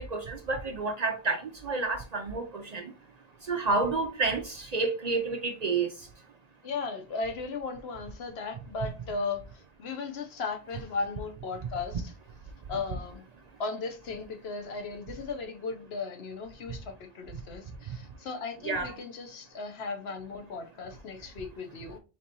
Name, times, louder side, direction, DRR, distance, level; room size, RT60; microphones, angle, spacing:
voice 1, 0.0-2.8 3.5-5.9 18.6-18.9, right 3 dB, 50° right, 0.6 m, -30 dB
voice 2, 6.6-12.1 12.7-13.2 13.6-22.0, left 4 dB, 75° left, 1.0 m, -36 dB
4.3 x 3.2 x 2.7 m
omnidirectional pair, 1.1 m